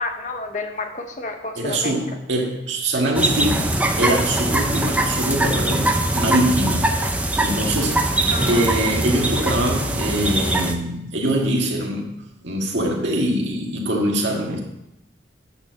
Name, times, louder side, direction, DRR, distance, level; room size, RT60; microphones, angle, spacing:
voice 1, 0.0-2.0 8.3-8.6, left 3 dB, 40° left, 4 dB, 0.9 m, -30 dB
voice 2, 1.6-6.9 7.4-12.2 12.4-14.6, right 1 dB, 70° right, -1 dB, 1.8 m, -23 dB
sound 1, 3.1-10.7, right 1 dB, 5° right, 0.5 m, -22 dB
8.9 x 4.5 x 6.3 m, 0.84 s
head